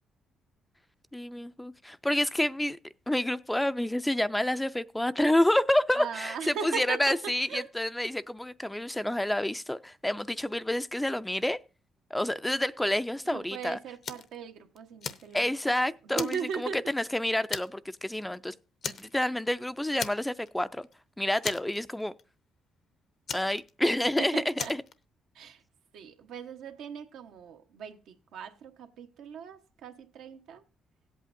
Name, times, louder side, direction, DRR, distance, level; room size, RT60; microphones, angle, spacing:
voice 1, 1.1-2.8 3.1-6.3 6.6-11.6 12.1-13.8 15.3-16.4 16.7-18.5 18.8-20.9 21.2-22.1 23.3-24.4, left 1 dB, 10° left, 0.4 m, -28 dB
voice 2, 5.9-7.7 13.2-15.5 16.0-16.8 24.2-24.7 25.3-25.6 25.9-30.6, right 7 dB, 85° right, 1.0 m, -38 dB
Fire, 14.0-14.4 14.8-15.7 16.1-17.1 17.5-17.9 18.2-18.4 18.8-19.5 20.0-20.6 20.8-20.9 21.4-22.2 23.3-24.1 24.6-24.9, left 6 dB, 60° left, 0.7 m, -37 dB
17.0 x 8.3 x 2.5 m
cardioid pair, 90°, 0 cm